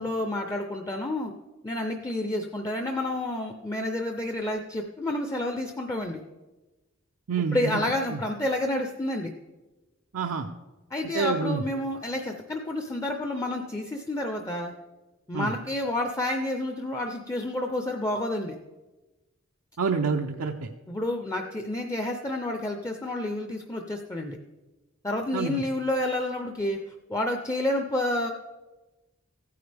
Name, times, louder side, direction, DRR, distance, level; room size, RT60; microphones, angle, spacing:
voice 1, 0.0-1.3 1.6-6.2 7.5-9.3 10.9-14.7 15.3-18.6 20.9-24.4 25.0-26.8 27.1-28.3, left 1 dB, 15° left, 4 dB, 0.5 m, -29 dB
voice 2, 7.3-7.8 8.1-8.2 10.1-10.5 11.1-11.6 15.3-15.5 19.8-20.7 25.3-25.6, right 5 dB, 90° right, 3 dB, 0.6 m, -27 dB
15.5 x 9.5 x 3.4 m, 1.1 s
head